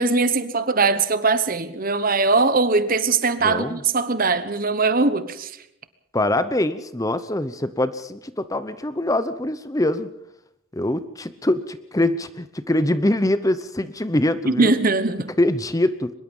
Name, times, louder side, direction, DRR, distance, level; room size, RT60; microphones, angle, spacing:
voice 1, 0.0-5.5 14.4-15.3, right 3 dB, 40° right, 1.1 m, -21 dB
voice 2, 3.4-3.8 6.1-10.1 10.7-14.7 15.4-16.1, left 1 dB, 15° left, 0.8 m, -23 dB
23.5 x 21.5 x 5.5 m
head